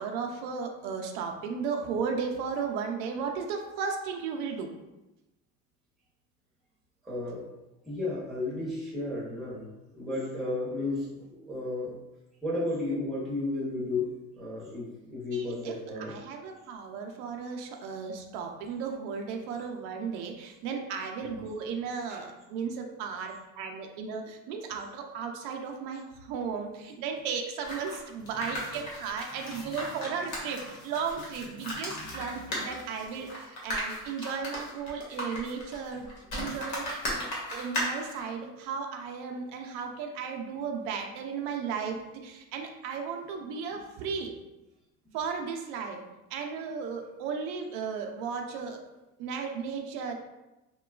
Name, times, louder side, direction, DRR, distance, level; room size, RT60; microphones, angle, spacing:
voice 1, 0.0-4.7 15.3-36.0 36.3-44.3 45.1-46.0 46.3-48.8 49.2-50.2, right 6 dB, 85° right, 3 dB, 0.5 m, -35 dB
voice 2, 7.0-7.4 7.8-9.6 9.9-11.9 12.4-16.2 21.2-21.3 22.1-22.2 28.3-29.0 29.3-30.2 30.5-30.6 31.4-32.5, left 2 dB, ahead, -7 dB, 0.7 m, -34 dB
sound 1, 27.6-38.2, equal, 55° left, 1.0 m, -36 dB
2.9 x 2.2 x 2.3 m, 0.99 s
cardioid pair, 140°, 35 cm